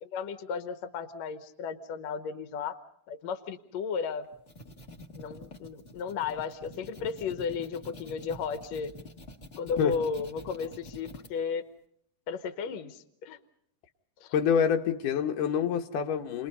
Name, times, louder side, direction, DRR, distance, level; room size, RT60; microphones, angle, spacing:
voice 1, 0.0-2.8 3.1-4.3 5.2-8.9 9.6-11.6 12.3-13.4 14.2-14.3, left 6 dB, 65° left, 2.2 m, -34 dB
sound 1, 4.2-11.3, left 1 dB, 35° left, 1.0 m, -47 dB
voice 2, 14.3-16.5, left 7 dB, 85° left, 2.7 m, -26 dB
30.0 x 21.5 x 5.4 m
omnidirectional pair, 3.6 m